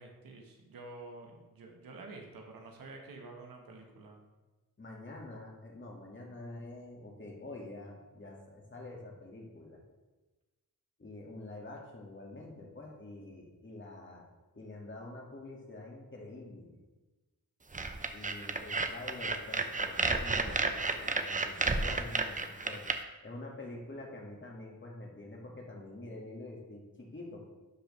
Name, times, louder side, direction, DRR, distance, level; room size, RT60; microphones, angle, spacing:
voice 1, 0.0-4.2 18.4-18.5, right 2 dB, 90° right, 1 dB, 1.4 m, -49 dB
voice 2, 4.8-9.8 11.0-14.3 14.5-16.8 18.1-22.8 23.2-27.5, left 2 dB, 35° left, -1 dB, 2.0 m, -46 dB
sound 1, 17.7-22.9, right 3 dB, 25° right, 0.6 m, -31 dB
11.5 x 5.1 x 3.2 m, 1.2 s
cardioid pair, 75°, 34 cm